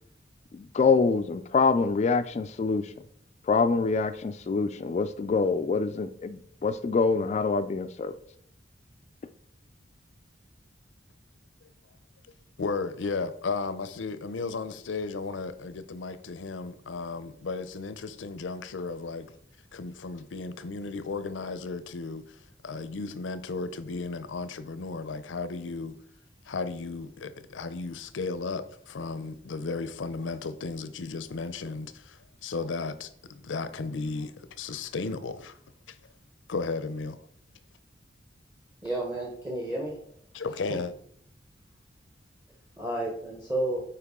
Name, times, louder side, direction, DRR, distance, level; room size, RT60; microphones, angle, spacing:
voice 1, 0.5-2.8 3.5-8.1, left 4 dB, 35° left, 0.3 m, -25 dB
voice 2, 12.6-19.3 19.7-22.4 22.6-26.0 26.5-35.6 35.9-36.0 36.5-37.2 40.3-40.9, left 4 dB, 85° left, 0.6 m, -34 dB
voice 3, 38.8-40.0 40.4-40.8 42.8-43.8, right 1 dB, 15° right, 1.0 m, -32 dB
8.2 x 4.7 x 3.6 m
head